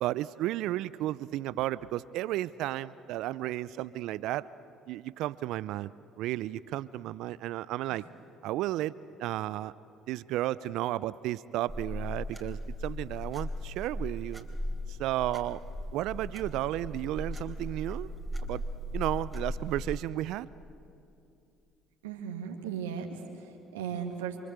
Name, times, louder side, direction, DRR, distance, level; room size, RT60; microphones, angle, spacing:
voice 1, 0.0-4.5 4.9-5.9 6.2-8.0 8.4-8.9 9.2-9.7 10.1-14.5 14.9-15.6 15.9-18.1 18.4-18.6 18.9-20.5, right 15 dB, 70° right, 18 dB, 0.5 m, -33 dB
sound 1, 11.7-20.1, left 1 dB, 5° right, 3.6 m, -37 dB
voice 2, 22.0-24.4, right 7 dB, 85° right, 2 dB, 2.2 m, -37 dB
28.0 x 24.5 x 8.1 m, 2.6 s
hypercardioid pair, 60°, 0 cm